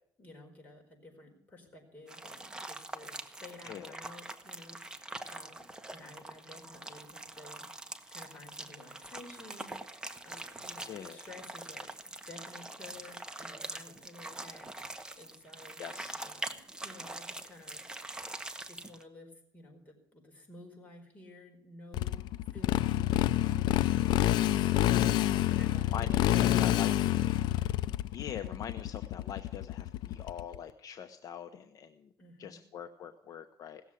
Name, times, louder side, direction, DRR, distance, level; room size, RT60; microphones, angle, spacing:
voice 1, 0.2-5.7 5.9-7.7 8.1-15.8 16.1-17.8 18.6-22.2 22.5-26.6 32.2-32.6, left 2 dB, 20° left, 1 dB, 4.7 m, -53 dB
sound 1, 2.1-19.0, right 2 dB, 10° right, 1.1 m, -44 dB
voice 2, 3.6-4.0 10.9-11.3 15.8-16.2 25.9-27.2 28.1-32.1 32.4-33.8, left 8 dB, 50° left, 8 dB, 0.9 m, -43 dB
Motorcycle, 21.9-30.6, left 13 dB, 75° left, 0.5 m, -28 dB
17.0 x 7.2 x 9.9 m, 0.71 s
cardioid pair, 125°, 8 cm